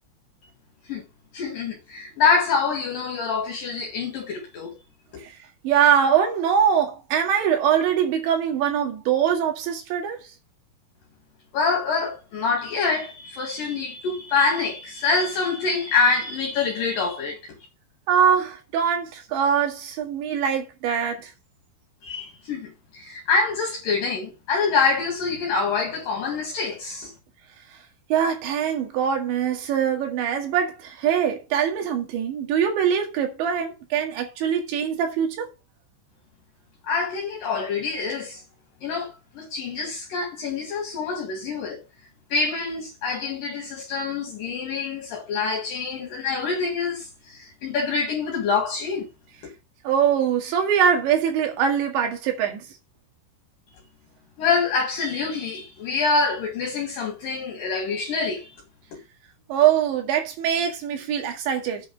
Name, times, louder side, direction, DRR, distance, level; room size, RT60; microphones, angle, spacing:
voice 1, 1.3-4.8 11.5-17.4 22.0-27.1 36.9-38.4 38.8-41.8 42.3-49.1 54.4-58.5, left 4 dB, 60° left, 3.3 m, -26 dB
voice 2, 5.6-10.3 18.1-21.3 28.1-35.5 49.8-52.6 59.5-61.9, right 8 dB, 90° right, 4.3 m, -23 dB
8.4 x 6.8 x 5.3 m
omnidirectional pair, 5.0 m